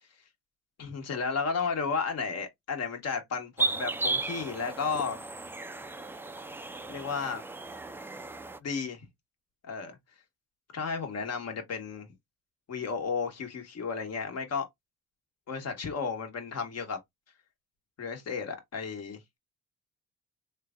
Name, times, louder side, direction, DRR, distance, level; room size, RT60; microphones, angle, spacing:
voice 1, 0.8-5.2 6.9-7.4 8.6-9.0 9.6-10.0 10.7-12.1 12.7-14.7 15.5-17.0 18.0-19.2, left 5 dB, 55° left, 1.4 m, -33 dB
sound 1, 3.6-8.6, right 3 dB, 10° right, 0.3 m, -35 dB
3.2 x 2.4 x 3.6 m
cardioid pair, 90°, 30 cm